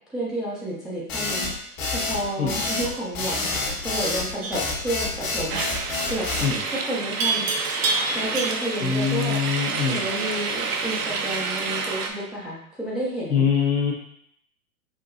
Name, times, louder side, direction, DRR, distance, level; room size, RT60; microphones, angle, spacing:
voice 1, 0.1-6.3 6.8-7.7 8.1-9.4 9.9-13.5, right 1 dB, ahead, -7 dB, 0.4 m, -31 dB
sound 1, 1.1-6.5, left 3 dB, 60° left, 1.5 m, -28 dB
Livestock farm animals working animals, 4.4-4.7 7.2-8.8, right 3 dB, 45° right, 0.8 m, -27 dB
sound 2, 5.5-12.1, right 4 dB, 80° right, 0.8 m, -29 dB
voice 2, 8.8-10.0 13.3-13.9, left 6 dB, 75° left, -1 dB, 1.2 m, -23 dB
5.7 x 2.7 x 2.6 m, 0.69 s
figure-of-eight pair, 105°, 45 cm